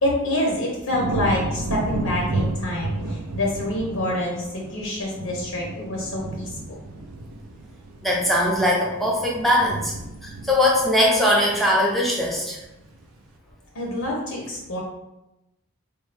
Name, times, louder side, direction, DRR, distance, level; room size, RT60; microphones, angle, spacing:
voice 1, 0.0-6.8 13.7-14.8, left 1 dB, 70° left, -2 dB, 0.7 m, -26 dB
sound 1, 0.9-12.2 12.6-13.1, right 2 dB, 75° right, 0.4 m, -32 dB
voice 2, 8.0-9.9 10.2-12.6, left 1 dB, ahead, -3 dB, 0.6 m, -20 dB
4.1 x 2.2 x 3.2 m, 0.93 s
head